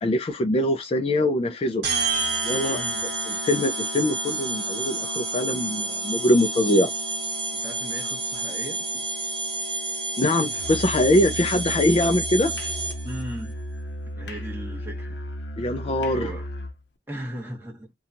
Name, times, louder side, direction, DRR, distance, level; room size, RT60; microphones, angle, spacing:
voice 1, 0.0-1.8 2.4-2.8 3.3-6.9 10.2-12.5 15.6-16.3, left 1 dB, 35° left, 0.3 m, -23 dB
sound 1, 1.8-13.2, right 3 dB, 65° right, 0.9 m, -29 dB
voice 2, 2.7-3.2 7.6-9.0 13.0-13.5 14.1-15.2 16.1-16.5 17.1-17.9, right 1 dB, 10° right, 1.1 m, -37 dB
Musical instrument, 10.5-16.8, equal, 75° left, 0.7 m, -34 dB
2.7 x 2.3 x 2.5 m
head